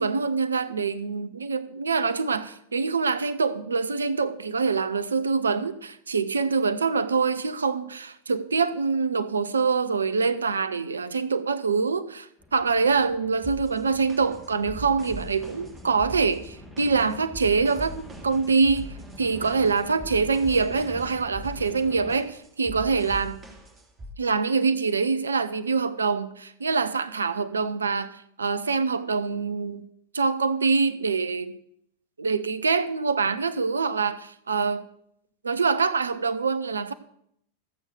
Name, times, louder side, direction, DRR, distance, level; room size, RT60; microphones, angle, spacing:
voice 1, 0.0-23.4 24.2-29.8 30.1-31.5 32.2-34.8 35.4-36.9, right 4 dB, 75° right, 0.8 m, -25 dB
sound 1, 12.4-22.1, left 1 dB, 10° left, 4.8 m, -46 dB
sound 2, 13.4-24.1, equal, 15° right, 3.4 m, -42 dB
14.0 x 8.0 x 6.6 m
figure-of-eight pair, 90°, 0 cm